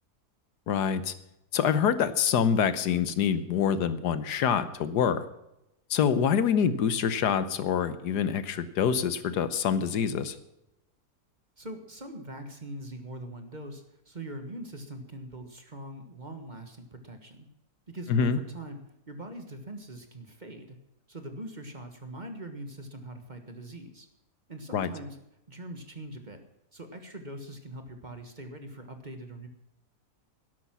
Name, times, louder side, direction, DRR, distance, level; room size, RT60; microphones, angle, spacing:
voice 1, 0.7-1.1 1.5-5.2 5.9-10.3 18.1-18.4 24.7-24.9, left 7 dB, 80° left, 13 dB, 1.5 m, -26 dB
voice 2, 11.6-17.4 17.9-18.8 19.1-20.8 21.1-24.1 24.5-25.2 25.5-26.4 26.7-29.5, right 1 dB, 30° right, 6 dB, 1.4 m, -42 dB
12.5 x 11.5 x 6.0 m, 0.85 s
omnidirectional pair, 1.7 m